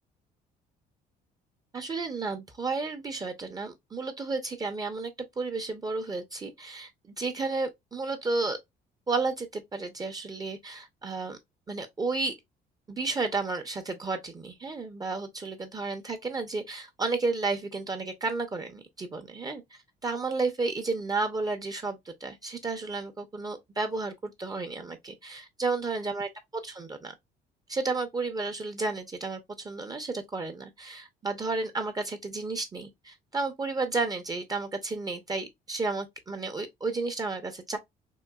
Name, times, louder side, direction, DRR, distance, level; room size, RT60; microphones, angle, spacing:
voice 1, 1.7-6.9 7.2-8.6 9.1-11.4 11.7-12.3 12.9-26.3 26.6-27.1 27.7-37.8, right 3 dB, 20° right, 0.5 m, -32 dB
3.7 x 2.4 x 2.2 m
cardioid pair, 110°, 17 cm